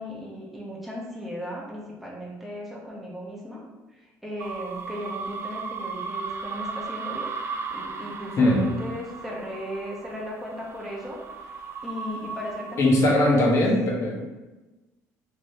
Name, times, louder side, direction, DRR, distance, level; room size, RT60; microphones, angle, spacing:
voice 1, 0.0-3.6 3.9-7.3 7.7-13.6, equal, ahead, -5 dB, 0.8 m, -36 dB
sound 1, 4.4-13.3, right 4 dB, 40° right, 0.3 m, -36 dB
voice 2, 8.4-8.7 12.8-14.3, left 1 dB, 50° left, -1 dB, 0.9 m, -20 dB
3.4 x 2.6 x 2.6 m, 1.1 s
cardioid pair, 105°, 7 cm